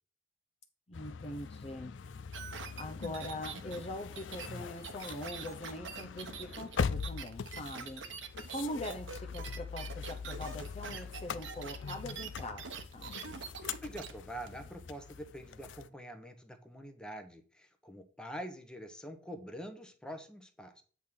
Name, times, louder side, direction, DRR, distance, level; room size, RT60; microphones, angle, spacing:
sound 1, 0.9-15.9, left 6 dB, 80° left, 0.5 m, -42 dB
voice 1, 0.9-1.9 2.8-8.0 8.5-12.6 12.9-13.1, left 1 dB, 35° left, 5 dB, 0.7 m, -42 dB
sound 2, 2.3-14.1 14.5-14.6, right 5 dB, 80° right, 1.0 m, -44 dB
voice 2, 13.8-20.8, equal, 5° left, 5 dB, 0.9 m, -45 dB
8.2 x 3.7 x 6.0 m, 0.40 s
head